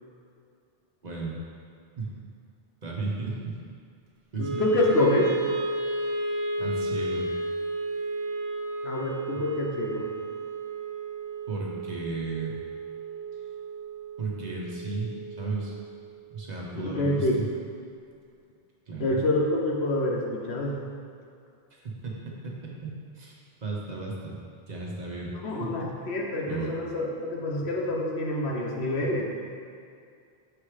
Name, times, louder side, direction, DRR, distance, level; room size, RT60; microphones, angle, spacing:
voice 1, 1.0-1.4 2.0-2.1 2.8-3.6 4.3-4.8 6.6-7.3 11.5-12.5 14.2-15.7 16.3-17.5 18.9-19.2 21.7-22.2 22.8-23.3 23.6-24.4 24.7-25.3 25.6-25.9 26.5-26.7, right 3 dB, 45° right, -4 dB, 1.0 m, -34 dB
voice 2, 4.4-5.3 8.8-10.1 16.8-17.4 19.0-20.8 25.3-29.2, left 1 dB, 85° left, -2 dB, 1.1 m, -27 dB
Wind instrument woodwind instrument, 4.4-16.6, right 2 dB, 75° right, 1.0 m, -33 dB
6.7 x 3.3 x 4.8 m, 2.4 s
omnidirectional pair, 1.0 m